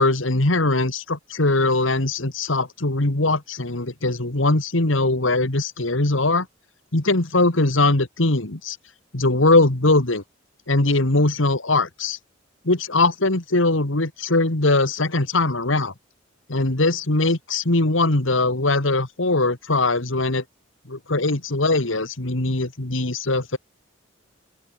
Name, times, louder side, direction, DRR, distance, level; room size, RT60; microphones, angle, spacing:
voice 1, 0.0-6.5 6.9-8.8 9.1-10.2 10.7-12.2 12.6-15.9 16.5-20.4 20.9-23.6, left 2 dB, 70° left, 2.3 m, -21 dB
open air
head